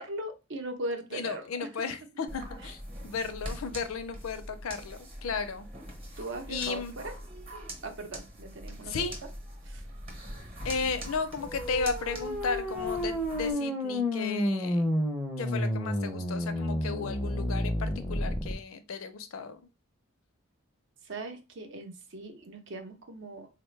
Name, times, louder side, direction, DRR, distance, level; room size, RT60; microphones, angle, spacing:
voice 1, 0.0-1.7 6.2-7.1 7.8-8.9 9.6-9.8 21.0-23.5, right 2 dB, 60° right, 6 dB, 0.7 m, -39 dB
voice 2, 1.1-5.7 6.5-6.9 8.8-9.2 10.6-14.9 15.4-19.6, left 5 dB, 80° left, 10 dB, 0.5 m, -34 dB
sound 1, 2.3-13.5, equal, 25° right, 0.9 m, -42 dB
sound 2, 11.4-18.5, left 1 dB, 5° right, 0.6 m, -31 dB
3.9 x 2.2 x 3.1 m, 0.27 s
head